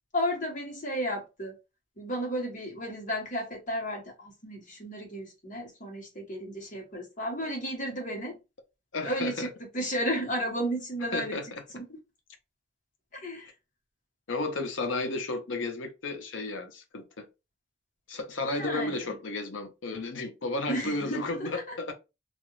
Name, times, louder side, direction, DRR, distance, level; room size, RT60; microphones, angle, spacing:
voice 1, 0.1-1.6 2.0-8.4 9.0-9.5 9.7-11.4 11.7-12.0 13.1-13.5 18.6-19.1 20.7-21.7, equal, 45° left, 1.3 m, -33 dB
voice 2, 8.9-9.5 11.1-11.6 14.3-17.3 18.1-21.9, left 2 dB, 85° left, 0.7 m, -33 dB
2.6 x 2.4 x 3.0 m
head